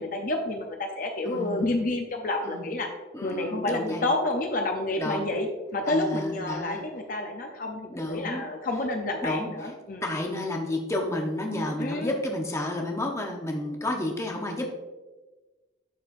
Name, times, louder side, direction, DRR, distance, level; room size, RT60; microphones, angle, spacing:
voice 1, 0.0-2.9 3.2-10.0 11.8-12.1 14.6-14.7, left 2 dB, 45° left, 3 dB, 0.6 m, -29 dB
voice 2, 1.2-1.8 2.4-2.7 3.1-4.1 5.0-5.3 5.9-6.8 7.9-8.4 9.2-9.7 10.0-14.7, left 1 dB, 15° left, 1 dB, 0.8 m, -31 dB
11.5 x 4.2 x 2.5 m, 1.2 s
head